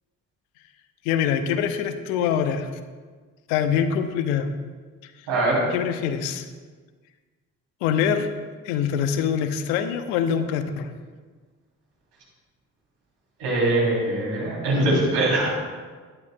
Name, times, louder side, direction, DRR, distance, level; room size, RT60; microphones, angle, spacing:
voice 1, 1.0-2.7 3.5-4.5 5.0-5.1 5.7-6.5 7.8-10.9, left 8 dB, 80° left, 9 dB, 0.8 m, -24 dB
voice 2, 5.3-5.6 13.4-15.6, right 2 dB, 75° right, -3 dB, 3.1 m, -22 dB
15.5 x 11.0 x 2.2 m, 1.5 s
hypercardioid pair, 40°, 41 cm